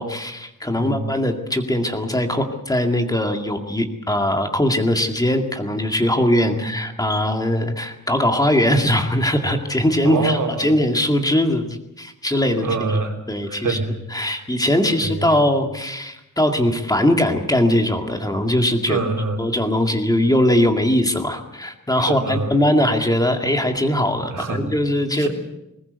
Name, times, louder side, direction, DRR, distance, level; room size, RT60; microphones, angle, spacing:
voice 1, 0.0-12.7 13.3-13.8 14.1-19.0 19.4-25.3, left 1 dB, 10° left, 4 dB, 2.2 m, -20 dB
voice 2, 10.0-10.7 12.6-13.2 13.5-13.9 14.2-14.3 15.0-15.4 18.9-19.4 22.1-22.5 24.3-24.6 25.2-25.3, right 4 dB, 85° right, 2 dB, 4.0 m, -25 dB
21.0 x 20.5 x 8.1 m, 0.86 s
wide cardioid pair, 165°, 31 cm